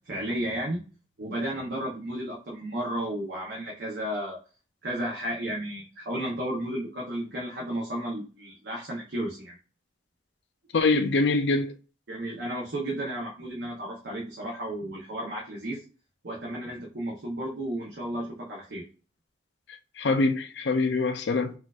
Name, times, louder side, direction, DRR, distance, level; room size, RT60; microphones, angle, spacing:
voice 1, 0.1-0.8 1.2-4.4 4.8-9.6 12.1-15.8 16.2-18.8, right 1 dB, 80° right, 0.7 m, -33 dB
voice 2, 10.7-11.7 20.0-21.5, left 3 dB, 85° left, 0.5 m, -24 dB
4.3 x 2.4 x 2.3 m
head